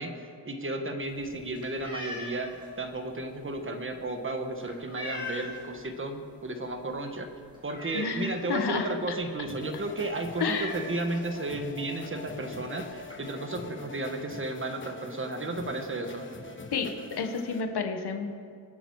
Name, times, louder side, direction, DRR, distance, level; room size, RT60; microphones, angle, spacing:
voice 1, 0.0-7.3 7.6-16.3, right 2 dB, 30° right, 5 dB, 1.4 m, -33 dB
sound 1, 1.0-5.8 6.1-6.5 6.7-6.8 7.2-8.6 8.9-9.1 9.3-9.5 9.8-9.9 10.3-11.6 12.4-12.5 12.7-13.1, left 1 dB, 10° right, 3.9 m, -41 dB
voice 2, 7.9-8.9 10.4-10.7 16.7-16.9 17.2-18.3, left 5 dB, 65° left, 5 dB, 1.3 m, -30 dB
sound 2, 9.5-17.6, left 2 dB, 30° left, 1.1 m, -44 dB
24.5 x 9.0 x 4.7 m, 2.2 s
wide cardioid pair, 150°, 42 cm